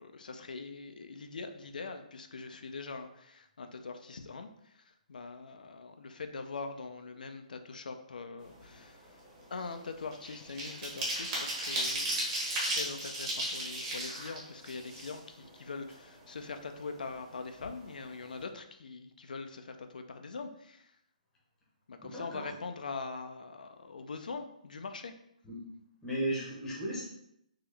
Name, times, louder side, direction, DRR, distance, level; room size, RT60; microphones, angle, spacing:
voice 1, 0.0-4.5 5.1-9.0 9.5-12.3 12.7-20.9 21.9-25.1, left 4 dB, 90° left, 7 dB, 0.4 m, -42 dB
sound 1, 8.5-8.8 9.1-15.5 15.9-16.0 16.3-17.3 17.6-17.7 18.0-18.3, right 1 dB, 20° right, 1.0 m, -35 dB
voice 2, 22.0-22.5 25.4-25.6 26.0-27.0, right 1 dB, 10° left, -5 dB, 0.8 m, -35 dB
3.7 x 2.9 x 3.3 m, 0.76 s
hypercardioid pair, 170°, 4 cm